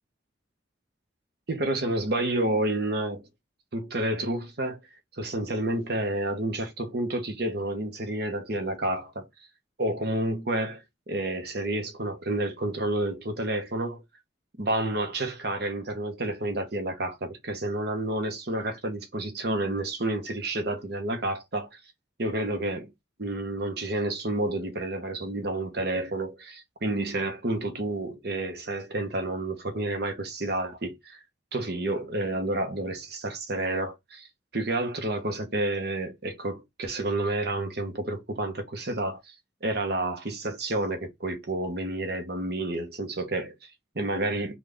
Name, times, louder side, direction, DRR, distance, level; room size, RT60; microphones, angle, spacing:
voice 1, 1.5-3.3 3.7-4.8 5.2-9.3 9.8-14.0 14.6-21.8 22.2-22.9 23.2-31.2 31.5-34.3 34.5-39.3 39.6-44.6, right 1 dB, 55° right, 0.9 m, -30 dB
3.9 x 2.4 x 3.3 m
head